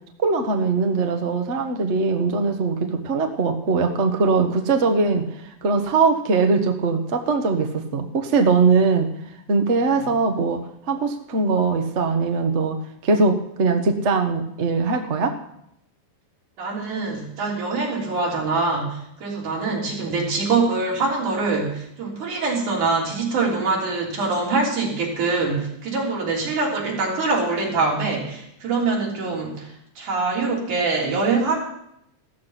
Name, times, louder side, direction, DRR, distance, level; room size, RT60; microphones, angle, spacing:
voice 1, 0.2-5.3 5.6-9.1 9.5-10.6 10.9-12.8 13.0-15.3, right 4 dB, 50° right, 5 dB, 0.8 m, -21 dB
voice 2, 16.6-31.6, right 3 dB, 75° right, -3 dB, 5.1 m, -24 dB
15.0 x 13.5 x 5.9 m, 0.75 s
omnidirectional pair, 3.5 m